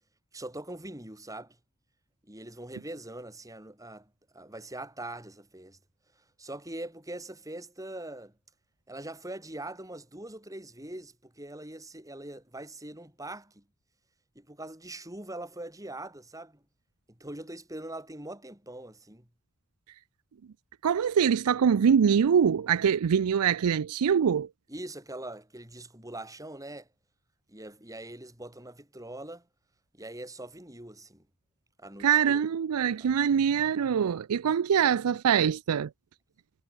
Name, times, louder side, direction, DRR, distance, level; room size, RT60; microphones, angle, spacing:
voice 1, 0.3-1.6 2.2-5.8 6.2-8.3 8.9-13.6 14.4-16.6 17.1-19.3 24.7-26.9 27.5-29.5 29.9-31.3 31.8-32.4 33.0-33.1, right 1 dB, 15° right, 5.7 m, -42 dB
voice 2, 20.8-24.5 32.0-35.9, right 7 dB, 85° right, 0.4 m, -24 dB
head